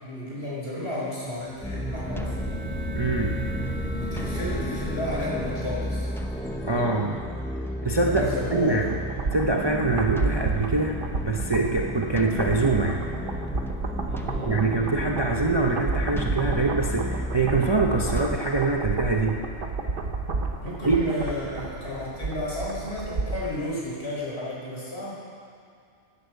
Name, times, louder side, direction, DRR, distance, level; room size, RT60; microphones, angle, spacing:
voice 1, 0.0-2.6 4.0-6.1 8.1-9.0 14.1-14.6 20.6-25.1, left 1 dB, 65° left, -6 dB, 4.7 m, -32 dB
sound 1, 1.4-8.1, equal, 85° left, 2.1 m, -36 dB
sound 2, 1.6-18.4, equal, 5° left, 0.4 m, -33 dB
voice 2, 2.9-3.4 6.6-7.2 7.8-8.2 8.5-8.8 9.3-13.0 14.5-19.4 20.8-21.0, right 3 dB, 25° right, 1 dB, 0.7 m, -24 dB
sound 3, 8.9-23.6 23.9-24.0, right 3 dB, 50° right, 1.2 m, -31 dB
11.0 x 10.5 x 7.9 m, 2.4 s
omnidirectional pair, 1.2 m